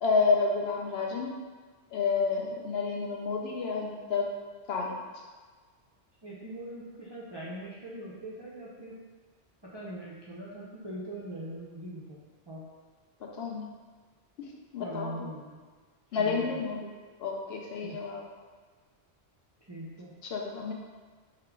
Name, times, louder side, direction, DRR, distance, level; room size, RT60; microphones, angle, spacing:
voice 1, 0.0-1.4 1.9-4.3 4.7-5.0 13.4-13.7 14.4-14.5 14.7-15.1 16.1-16.9 17.2-18.2 20.2-20.7, left 4 dB, 70° left, 0 dB, 0.8 m, -29 dB
voice 2, 6.2-9.0 9.6-12.6 14.8-15.6 16.2-16.7 17.8-18.0 19.7-20.2, right 1 dB, 35° right, -7 dB, 0.4 m, -41 dB
3.9 x 2.3 x 4.4 m, 1.5 s
omnidirectional pair, 1.1 m